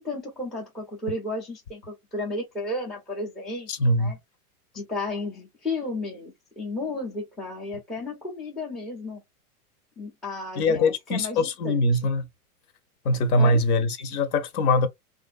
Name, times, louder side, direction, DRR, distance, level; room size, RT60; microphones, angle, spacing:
voice 1, 0.0-4.2 4.7-9.2 10.0-11.9 13.4-13.6, left 2 dB, ahead, 0.4 m, -33 dB
voice 2, 3.7-4.2 10.6-12.3 13.0-14.9, left 2 dB, 70° left, 0.9 m, -22 dB
3.1 x 2.5 x 2.3 m
hypercardioid pair, 125°, 46 cm